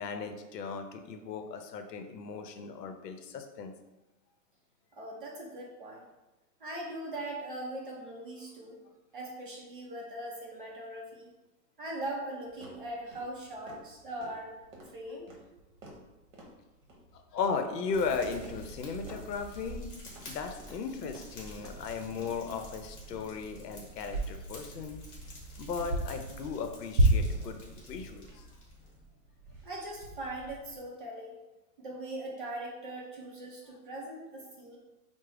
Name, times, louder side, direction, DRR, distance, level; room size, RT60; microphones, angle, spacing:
voice 1, 0.0-3.7 17.1-19.9 20.2-25.0 25.6-27.6 27.9-28.5, left 5 dB, 90° left, 6 dB, 0.6 m, -36 dB
voice 2, 4.9-6.1 6.6-8.8 9.1-11.3 11.8-14.5 14.9-15.3 29.6-31.4 31.8-34.8, right 1 dB, 35° right, -2 dB, 0.5 m, -40 dB
sound 1, 12.4-30.8, right 1 dB, 55° right, 0.9 m, -36 dB
Fire, 17.9-29.1, equal, 35° left, 0.9 m, -48 dB
3.3 x 2.0 x 3.5 m, 1.0 s
hypercardioid pair, 170°, 47 cm